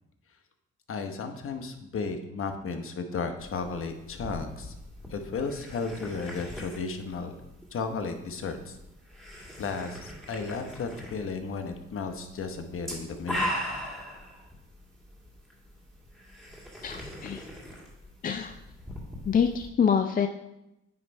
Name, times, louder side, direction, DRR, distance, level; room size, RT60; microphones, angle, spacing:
voice 1, 0.9-4.7 5.1-7.3 7.7-8.8 9.6-13.5, left 4 dB, 45° left, 6 dB, 0.9 m, -34 dB
sound 1, 3.4-19.7, equal, ahead, 2.0 m, -40 dB
voice 2, 16.8-17.5 18.2-18.5 19.3-20.3, left 7 dB, 30° left, 6 dB, 0.4 m, -26 dB
9.5 x 3.2 x 4.5 m, 0.91 s
cardioid pair, 90°, 30 cm